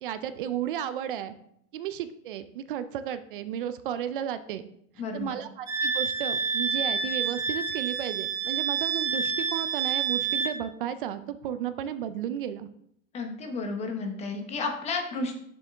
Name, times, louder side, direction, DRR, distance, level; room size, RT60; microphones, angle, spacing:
voice 1, 0.0-1.3 1.7-4.6 5.1-12.7, right 10 dB, 40° right, 12 dB, 0.4 m, -33 dB
voice 2, 5.0-5.3 13.1-15.4, left 3 dB, 15° left, 4 dB, 0.9 m, -32 dB
Wind instrument woodwind instrument, 5.7-10.6, right 6 dB, 10° right, 1.1 m, -28 dB
7.0 x 6.8 x 3.4 m, 0.71 s
supercardioid pair, 150°, 41 cm